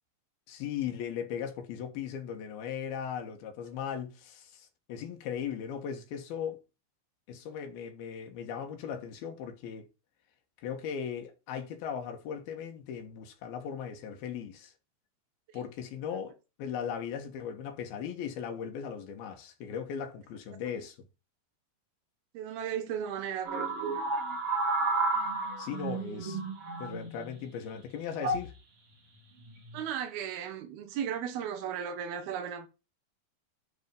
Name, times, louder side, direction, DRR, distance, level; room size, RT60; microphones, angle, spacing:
voice 1, 0.5-6.6 7.3-9.9 10.6-14.7 15.5-21.0 25.6-26.4 26.8-28.5, left 8 dB, 85° left, 3.2 m, -38 dB
voice 2, 22.3-23.9 25.8-26.3 29.7-32.7, right 8 dB, 90° right, 3.1 m, -36 dB
sound 1, 23.4-27.3 28.2-28.5 29.5-29.8, right 3 dB, 45° right, 2.5 m, -32 dB
10.5 x 4.3 x 5.2 m
omnidirectional pair, 4.2 m